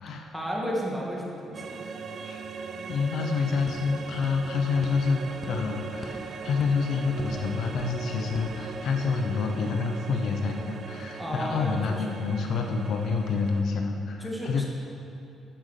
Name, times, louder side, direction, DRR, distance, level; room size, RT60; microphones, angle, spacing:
voice 1, 0.3-1.8 11.2-12.0 14.2-14.6, equal, 5° right, -3 dB, 2.1 m, -32 dB
sound 1, 1.5-13.6, right 5 dB, 55° right, 0.6 m, -39 dB
voice 2, 2.9-14.6, left 4 dB, 70° left, 3 dB, 0.9 m, -28 dB
sound 2, 3.2-9.3, left 2 dB, 25° left, 1.1 m, -46 dB
10.0 x 5.6 x 6.6 m, 2.8 s
cardioid pair, 90°, 0 cm